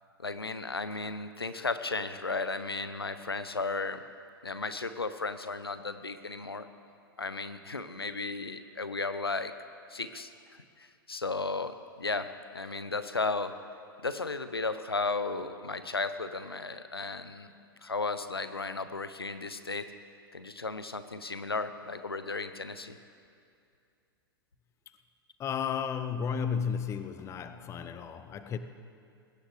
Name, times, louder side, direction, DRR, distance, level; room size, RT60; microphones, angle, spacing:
voice 1, 0.2-4.0 4.4-6.7 7.2-9.5 9.9-13.6 14.0-17.5 17.8-19.9 20.3-23.0, left 3 dB, 85° left, 12 dB, 0.7 m, -34 dB
voice 2, 25.4-28.6, left 7 dB, 25° left, 10 dB, 0.7 m, -33 dB
21.0 x 17.0 x 3.3 m, 2.5 s
figure-of-eight pair, 95°, 12 cm